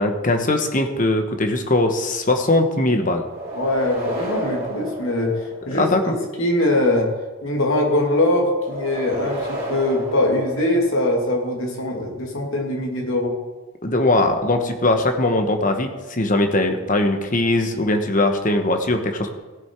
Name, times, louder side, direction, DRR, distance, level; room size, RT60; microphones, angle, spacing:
voice 1, 0.0-3.2 5.8-6.1 13.8-19.3, left 2 dB, 40° left, 5 dB, 1.2 m, -20 dB
sound 1, 3.2-6.0 8.6-11.3, right 1 dB, 45° right, 3.5 m, -31 dB
voice 2, 3.5-5.3 5.7-7.1 7.4-13.3, left 1 dB, 70° left, 0 dB, 2.5 m, -22 dB
16.5 x 7.1 x 4.6 m, 1.2 s
head